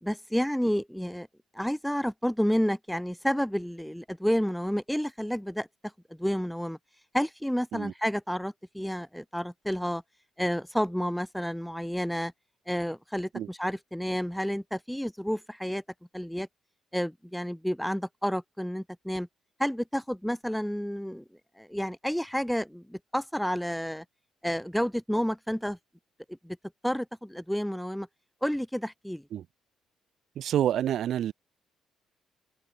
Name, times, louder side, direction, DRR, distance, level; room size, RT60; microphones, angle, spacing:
voice 1, 0.0-1.3 1.5-5.7 6.2-6.8 7.1-10.0 10.4-12.3 12.7-15.8 16.1-16.5 16.9-19.3 19.6-21.2 21.6-24.0 24.4-25.8 26.4-26.6 26.8-28.1 28.4-29.2, equal, ahead, 3.5 m, -30 dB
voice 2, 30.4-31.3, right 10 dB, 60° right, 5.2 m, -28 dB
cardioid pair, 135°, 0 cm